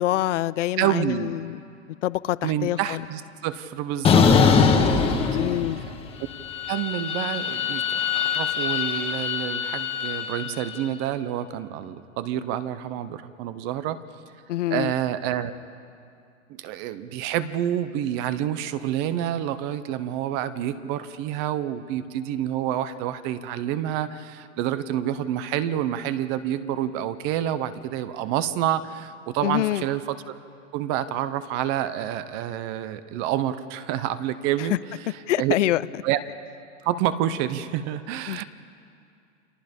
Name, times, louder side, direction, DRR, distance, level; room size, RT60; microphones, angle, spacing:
voice 1, 0.0-1.6 2.0-3.0 4.3-4.8 5.3-5.8 14.5-14.9 29.4-29.8 35.3-35.8 38.3-38.4, left 14 dB, 65° left, 18 dB, 0.6 m, -26 dB
voice 2, 0.8-1.3 2.4-5.4 5.8-5.9 6.7-14.0 14.7-15.5 16.5-30.3 30.7-34.8 35.0-35.5 36.0-36.2 36.8-38.4, right 11 dB, 25° right, 13 dB, 0.7 m, -28 dB
sound 1, 4.0-6.0 6.3-10.6, left 6 dB, 15° left, 1.4 m, -22 dB
30.0 x 25.0 x 5.3 m, 2.4 s
supercardioid pair, 155°, 39 cm